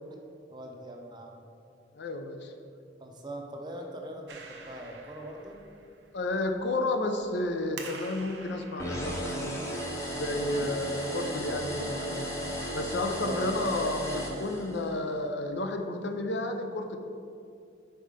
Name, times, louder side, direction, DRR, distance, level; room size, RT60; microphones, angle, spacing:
voice 1, 0.5-1.3 3.0-5.6 10.4-10.7 13.2-13.4, right 1 dB, 25° right, 2 dB, 0.6 m, -42 dB
voice 2, 1.9-2.5 6.1-9.6 10.1-12.3 12.7-17.0, left 2 dB, 70° left, 5 dB, 0.5 m, -31 dB
Clapping, 4.3-11.0, right 4 dB, 65° right, 0.7 m, -49 dB
sound 1, 8.8-15.0, equal, 15° left, 0.8 m, -35 dB
5.4 x 4.2 x 5.0 m, 2.5 s
head